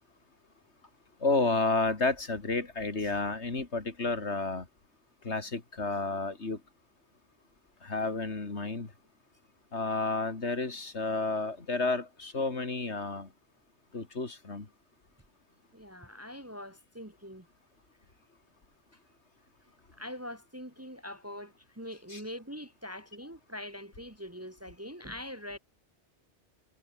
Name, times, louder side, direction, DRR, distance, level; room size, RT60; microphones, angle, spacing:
voice 1, 1.2-4.7 5.2-6.6 7.8-8.9 9.7-13.3 13.9-14.7 22.1-22.2, left 3 dB, 75° left, 3.2 m, -31 dB
voice 2, 15.7-17.5 20.0-25.6, left 1 dB, 15° right, 1.3 m, -43 dB
omnidirectional pair, 1.2 m